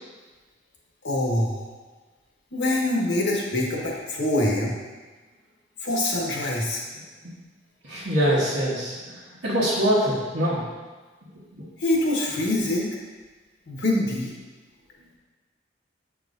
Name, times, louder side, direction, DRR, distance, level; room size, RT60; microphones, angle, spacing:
voice 1, 1.0-1.7 2.5-4.8 5.8-6.8 11.8-13.0 13.7-14.3, left 1 dB, 85° left, -2 dB, 1.3 m, -24 dB
voice 2, 7.8-10.6 11.3-11.6, equal, 85° right, -9 dB, 1.2 m, -24 dB
7.8 x 4.8 x 2.6 m, 1.3 s
head